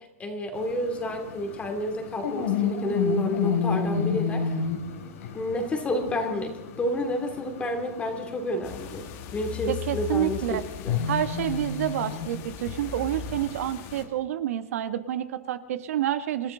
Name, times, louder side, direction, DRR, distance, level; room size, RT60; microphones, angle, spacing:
voice 1, 0.2-4.6 5.3-6.5 6.8-9.0 9.3-11.0, left 1 dB, 15° left, 4 dB, 2.6 m, -30 dB
sound 1, 0.5-14.1, left 6 dB, 70° left, 3.2 m, -32 dB
sound 2, 8.6-14.0, left 9 dB, 40° left, 1.9 m, -39 dB
voice 2, 9.7-10.6 11.0-16.5, right 11 dB, 70° right, 11 dB, 1.2 m, -28 dB
27.5 x 13.5 x 3.8 m, 0.99 s
hypercardioid pair, 140°, 8 cm